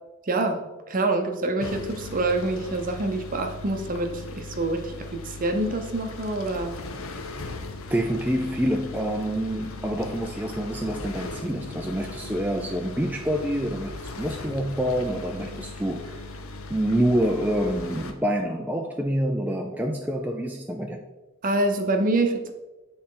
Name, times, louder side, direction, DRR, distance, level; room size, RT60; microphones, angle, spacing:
voice 1, 0.3-0.6 0.9-6.8 21.4-22.5, right 2 dB, 40° right, 5 dB, 0.7 m, -26 dB
sound 1, 1.6-18.1, left 2 dB, 70° left, 0.7 m, -38 dB
voice 2, 7.9-16.2 16.7-21.0, equal, 10° right, 1 dB, 0.3 m, -27 dB
8.6 x 4.2 x 3.8 m, 1.1 s
head